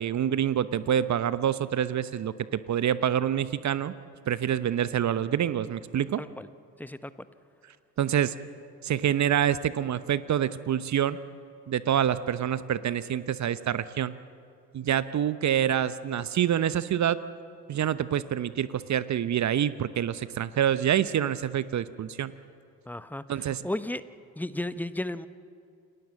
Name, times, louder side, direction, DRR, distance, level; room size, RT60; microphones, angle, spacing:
voice 1, 0.0-3.9 4.3-6.2 8.0-8.3 8.8-11.2 11.7-14.1 14.7-17.2 17.7-22.3 23.3-23.6, right 10 dB, 35° right, 16 dB, 0.9 m, -26 dB
voice 2, 6.2-6.5 6.8-7.1 22.9-24.0 24.4-25.3, left 1 dB, 5° left, 14 dB, 0.8 m, -34 dB
28.5 x 19.0 x 7.3 m, 2.4 s
figure-of-eight pair, 50°, 49 cm